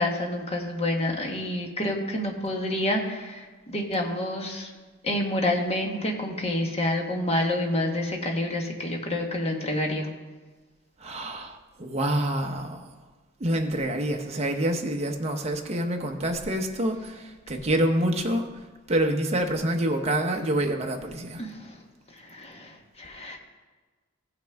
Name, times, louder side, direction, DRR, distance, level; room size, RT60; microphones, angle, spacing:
voice 1, 0.0-4.7 5.0-10.1 21.4-21.7 22.2-23.4, left 1 dB, 30° left, 1 dB, 1.2 m, -28 dB
voice 2, 11.0-12.8 13.4-18.6 18.9-21.4, right 1 dB, 30° right, 3 dB, 0.8 m, -27 dB
15.0 x 5.8 x 3.4 m, 1.3 s
head